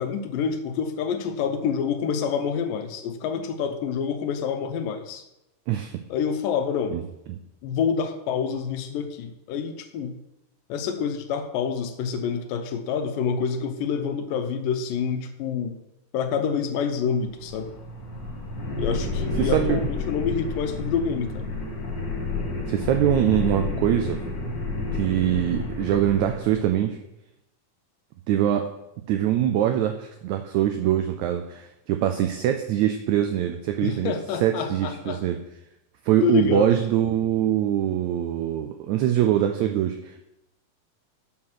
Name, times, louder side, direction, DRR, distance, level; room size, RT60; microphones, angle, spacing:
voice 1, 0.0-5.2 6.1-6.9 7.6-10.1 10.7-15.8 16.1-17.7 18.8-21.5 33.8-35.2 36.2-36.8, left 6 dB, 85° left, 6 dB, 2.5 m, -27 dB
sound 1, 17.2-26.7, left 3 dB, 35° left, 2.5 m, -30 dB
voice 2, 19.4-19.8 22.7-24.2 24.9-27.0 28.3-28.6 29.1-34.1 34.4-35.4 36.1-40.2, right 11 dB, 80° right, 6 dB, 1.7 m, -23 dB
7.5 x 6.6 x 6.1 m, 0.88 s
omnidirectional pair, 3.8 m